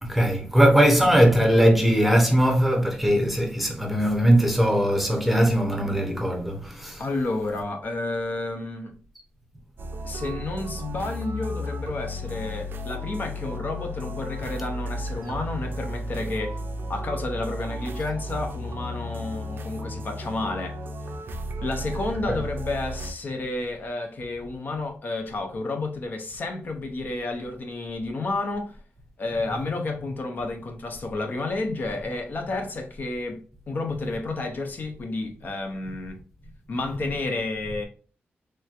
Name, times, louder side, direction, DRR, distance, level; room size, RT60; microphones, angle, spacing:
voice 1, 0.0-7.0 22.3-22.4, equal, ahead, 0.7 m, -20 dB
voice 2, 7.0-8.9 10.0-16.6 16.9-20.8 21.6-28.8 29.2-33.4 33.7-36.2 36.7-37.9, left 2 dB, 50° left, 0.5 m, -31 dB
sound 1, 9.8-23.1, equal, 60° right, 0.5 m, -34 dB
3.2 x 3.0 x 2.4 m
wide cardioid pair, 165°, 4 cm